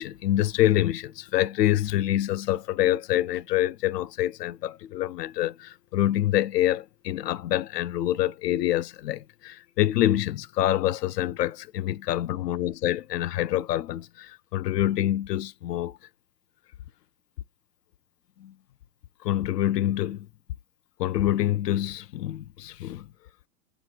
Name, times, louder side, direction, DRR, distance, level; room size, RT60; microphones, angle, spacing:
voice 1, 0.0-16.0 18.4-18.5 19.2-20.3 21.0-23.1, left 13 dB, 75° left, 0.6 m, -26 dB
7.8 x 2.7 x 4.4 m
hypercardioid pair, 110°, 49 cm